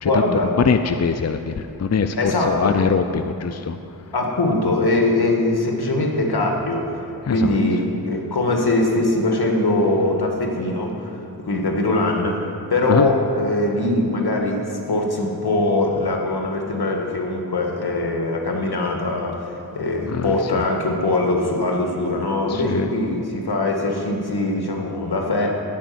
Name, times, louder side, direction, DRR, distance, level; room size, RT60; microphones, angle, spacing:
voice 1, 0.0-0.5 2.2-2.8 4.1-7.0 7.3-25.5, left 2 dB, 75° left, 1 dB, 1.8 m, -22 dB
voice 2, 0.6-3.8 7.3-7.5 12.9-13.1 20.1-20.6 22.5-22.9, left 5 dB, 45° left, 8 dB, 0.5 m, -22 dB
15.0 x 5.2 x 9.4 m, 2.7 s
wide cardioid pair, 55°, 38 cm